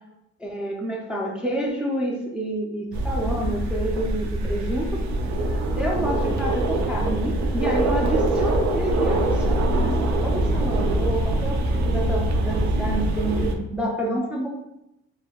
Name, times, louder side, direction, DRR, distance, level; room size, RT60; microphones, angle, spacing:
voice 1, 0.4-5.0 5.5-14.5, right 1 dB, 5° right, -2 dB, 0.4 m, -29 dB
sound 1, 2.9-13.5, right 1 dB, 65° right, 0.5 m, -23 dB
3.2 x 2.1 x 2.3 m, 0.85 s
cardioid pair, 90°, 30 cm